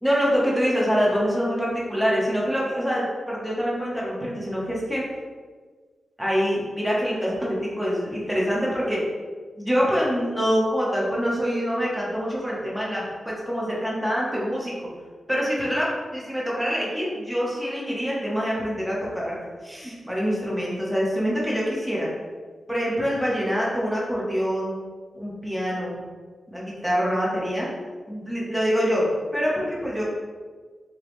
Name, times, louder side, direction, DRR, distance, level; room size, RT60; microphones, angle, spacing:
voice 1, 0.0-5.0 6.2-9.0 9.6-14.7 15.3-15.9 16.1-22.1 22.7-24.7 25.1-26.0 26.5-27.7 28.1-30.0, equal, ahead, -6 dB, 0.8 m, -25 dB
5.0 x 2.2 x 3.0 m, 1.5 s
wide cardioid pair, 170°, 0 cm